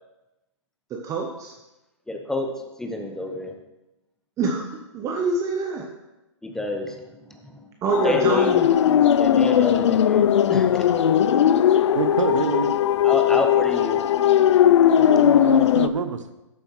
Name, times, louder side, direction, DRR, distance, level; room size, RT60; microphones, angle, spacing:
voice 1, 0.9-1.5 4.4-4.7 4.9-5.9 7.8-8.7 9.1-9.2, right 4 dB, 20° right, 1 dB, 0.9 m, -25 dB
voice 2, 2.1-2.5 2.8-3.5 6.4-7.7 8.0-8.6 9.2-11.0 13.0-14.0, left 2 dB, 5° left, 4 dB, 0.9 m, -29 dB
sound 1, 7.9-15.9, left 10 dB, 65° left, 0.4 m, -18 dB
voice 3, 11.9-12.7 15.0-16.2, right 5 dB, 80° right, 10 dB, 1.0 m, -26 dB
13.5 x 7.9 x 3.2 m, 0.98 s
hypercardioid pair, 135°, 16 cm